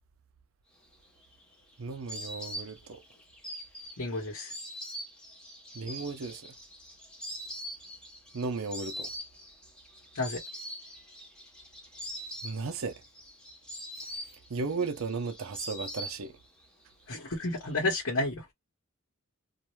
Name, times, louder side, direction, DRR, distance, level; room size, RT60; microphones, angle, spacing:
Insect, 0.9-16.6 16.9-17.7, equal, 5° left, 0.7 m, -43 dB
voice 1, 1.8-3.0 5.7-6.5 8.3-9.1 12.4-13.0 14.5-16.4, right 4 dB, 70° right, 0.6 m, -35 dB
voice 2, 4.0-4.5 10.1-10.4 17.1-18.4, left 2 dB, 70° left, 1.1 m, -31 dB
2.6 x 2.2 x 3.1 m
head